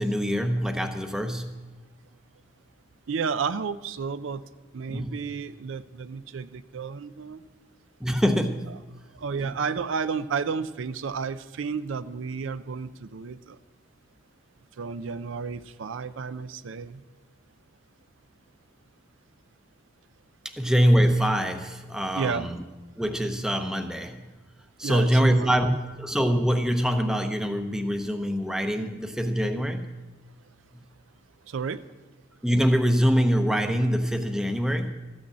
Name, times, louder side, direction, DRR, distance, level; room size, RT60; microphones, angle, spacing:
voice 1, 0.0-1.7 4.9-5.2 8.0-8.8 20.4-22.6 23.0-24.2 24.8-30.0 32.4-34.9, equal, 5° right, 6 dB, 0.7 m, -24 dB
voice 2, 3.1-4.4 4.7-7.4 9.1-13.6 14.8-17.0 22.1-22.5 24.8-25.7 31.5-31.8, right 5 dB, 75° right, 13 dB, 0.4 m, -32 dB
13.5 x 6.3 x 8.5 m, 1.2 s
head